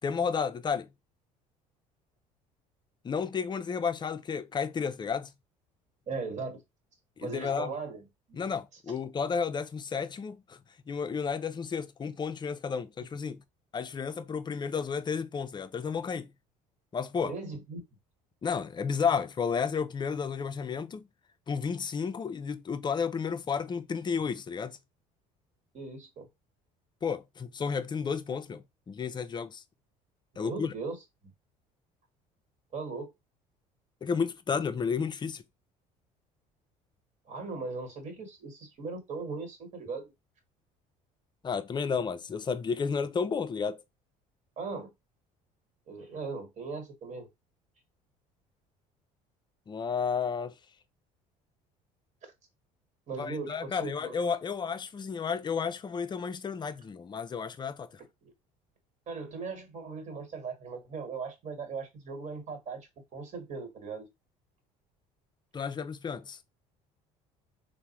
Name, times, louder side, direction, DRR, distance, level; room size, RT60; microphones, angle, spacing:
voice 1, 0.0-0.9 3.0-5.3 7.2-7.7 8.3-10.6 10.9-13.4 13.7-16.3 16.9-17.3 18.4-21.1 21.5-24.8 27.0-29.6 30.4-30.7 34.0-35.4 41.4-43.8 49.7-50.5 53.2-58.0 65.5-66.4, left 6 dB, 25° left, 0.4 m, -32 dB
voice 2, 6.1-6.6 7.2-8.4 17.2-17.9 25.7-26.3 30.3-31.0 32.7-33.1 37.3-40.1 44.6-44.9 45.9-47.3 53.1-54.1 58.2-58.3 59.1-64.1, right 4 dB, 45° right, 1.4 m, -38 dB
3.5 x 2.1 x 2.9 m
supercardioid pair, 75°, 17 cm